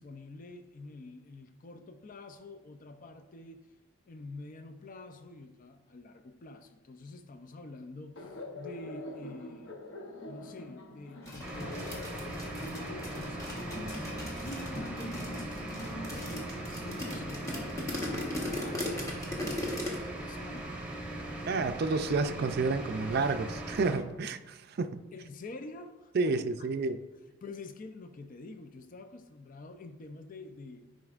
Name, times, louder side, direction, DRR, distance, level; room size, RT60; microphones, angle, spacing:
voice 1, 0.0-3.7 4.1-9.8 10.3-20.8 25.1-26.7 27.4-30.9, left 2 dB, 40° left, 7 dB, 0.4 m, -47 dB
Laughter, 8.2-19.1, left 1 dB, 65° left, 0.8 m, -44 dB
sound 1, 11.3-20.0, left 1 dB, 15° left, 1.2 m, -39 dB
sound 2, 11.4-24.0, right 1 dB, 5° right, 1.0 m, -40 dB
voice 2, 21.5-25.0 26.1-27.0, right 3 dB, 50° right, 9 dB, 0.4 m, -30 dB
11.0 x 5.1 x 2.4 m, 1.2 s
head